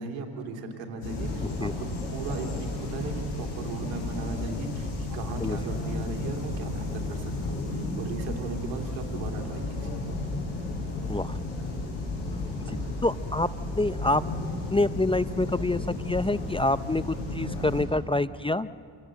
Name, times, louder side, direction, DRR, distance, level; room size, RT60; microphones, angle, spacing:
voice 1, 0.0-10.1 12.6-12.9, right 4 dB, 90° right, 3 dB, 2.9 m, -37 dB
sound 1, 1.0-17.9, left 2 dB, 90° left, 5.7 m, -33 dB
voice 2, 13.0-13.5 13.7-14.2 14.7-18.7, left 2 dB, 10° left, 14 dB, 0.5 m, -26 dB
27.5 x 18.0 x 7.7 m, 2.2 s
supercardioid pair, 55°, 44 cm